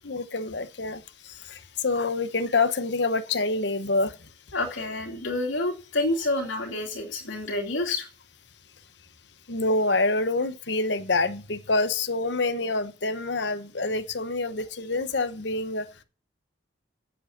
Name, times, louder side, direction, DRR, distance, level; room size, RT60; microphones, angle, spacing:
voice 1, 0.0-4.1 9.5-15.9, left 3 dB, 60° left, 1.0 m, -27 dB
voice 2, 4.5-8.1, left 2 dB, 90° left, 2.8 m, -28 dB
8.5 x 7.8 x 8.6 m
head